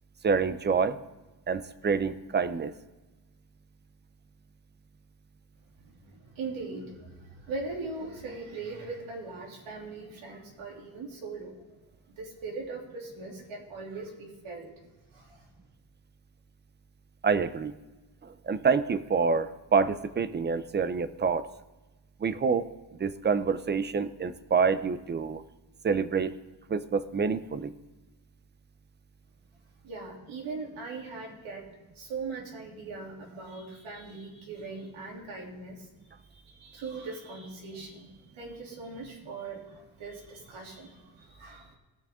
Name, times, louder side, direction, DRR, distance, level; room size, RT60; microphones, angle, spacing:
voice 1, 0.2-1.0 1.5-2.7 17.2-17.7 18.2-21.5 22.2-22.7 23.0-25.4 25.8-26.4 26.7-27.7, right 5 dB, 25° right, 13 dB, 0.5 m, -27 dB
voice 2, 5.8-11.5 12.2-14.7 15.1-15.5 29.8-31.7 31.9-35.9 36.2-41.8, right 3 dB, 90° right, -1 dB, 3.1 m, -40 dB
18.5 x 6.7 x 3.6 m, 1.1 s
cardioid pair, 135°, 46 cm